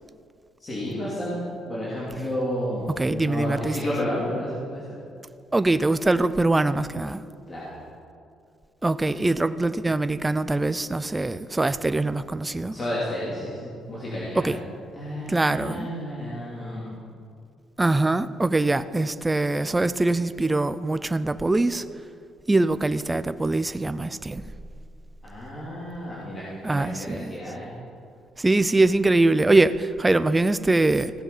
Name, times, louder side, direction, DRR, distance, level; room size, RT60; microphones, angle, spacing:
voice 1, 0.6-1.4 1.6-4.8 7.5-7.7 12.7-14.6 14.9-16.9 25.2-27.7, equal, 25° left, 2.9 m, -31 dB
voice 2, 3.0-3.8 5.5-7.2 8.8-12.7 14.4-14.6 15.3-15.9 17.8-21.8 22.5-24.4 26.6-27.3 28.4-31.1, right 2 dB, 15° right, 0.4 m, -23 dB
16.0 x 7.2 x 5.5 m
cardioid pair, 120°, 0 cm